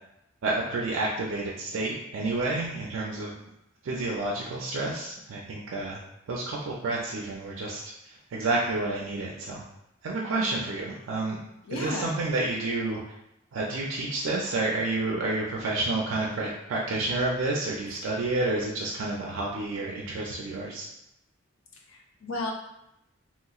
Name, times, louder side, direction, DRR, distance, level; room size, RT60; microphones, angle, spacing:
voice 1, 0.4-3.4 3.8-6.0 6.3-7.8 8.3-9.6 10.0-11.4 11.7-13.0 13.5-20.9, right 2 dB, 75° right, -3 dB, 0.4 m, -29 dB
voice 2, 11.6-12.1 17.9-18.0 21.9-22.5, left 2 dB, 80° left, 1 dB, 0.6 m, -34 dB
2.9 x 2.9 x 2.3 m, 0.83 s
head